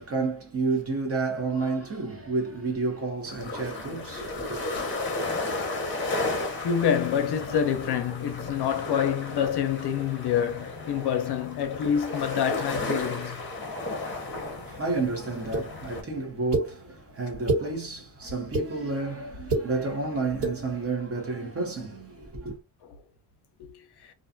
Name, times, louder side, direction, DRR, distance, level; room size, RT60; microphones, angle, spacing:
voice 1, 0.0-4.6 14.3-22.6, right 3 dB, 30° right, 0.8 m, -31 dB
sound 1, 3.2-16.0, left 2 dB, 25° left, 0.7 m, -34 dB
voice 2, 6.6-13.4 23.6-24.1, left 8 dB, 60° left, 0.6 m, -27 dB
sound 2, 15.5-15.6 16.5-16.7 17.3-17.6 18.3-18.7 19.3-19.6 20.3-20.5, right 2 dB, 65° right, 1.6 m, -25 dB
2.5 x 2.3 x 2.5 m
cardioid pair, 160°, 45 cm